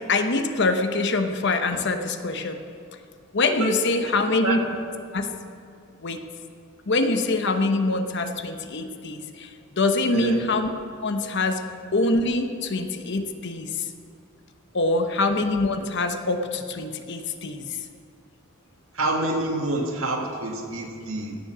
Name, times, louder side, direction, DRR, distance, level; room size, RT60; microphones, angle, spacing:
voice 1, 0.0-2.6 3.3-4.6 5.1-5.3 6.0-6.2 6.9-9.5 9.8-10.7 11.0-11.6 11.9-13.9 14.7-17.6, left 2 dB, 55° left, 7 dB, 0.9 m, -24 dB
voice 2, 19.0-21.4, right 2 dB, 80° right, 1 dB, 1.9 m, -27 dB
16.5 x 7.4 x 6.2 m, 2.4 s
head